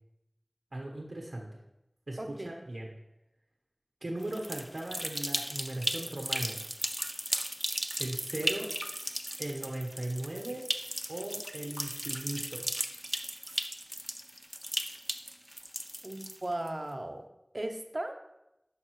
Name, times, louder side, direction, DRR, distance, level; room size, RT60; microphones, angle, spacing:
voice 1, 0.7-1.6 2.1-2.9 4.0-6.6 8.0-8.7 9.4-10.7 11.1-12.7, right 1 dB, 75° right, 0 dB, 1.0 m, -38 dB
voice 2, 2.2-2.6 16.0-17.2 17.5-18.2, right 1 dB, 50° right, 5 dB, 0.8 m, -37 dB
sound 1, 4.2-16.7, equal, 5° right, 0.5 m, -36 dB
11.0 x 5.4 x 3.1 m, 0.90 s
wide cardioid pair, 50°, 0 cm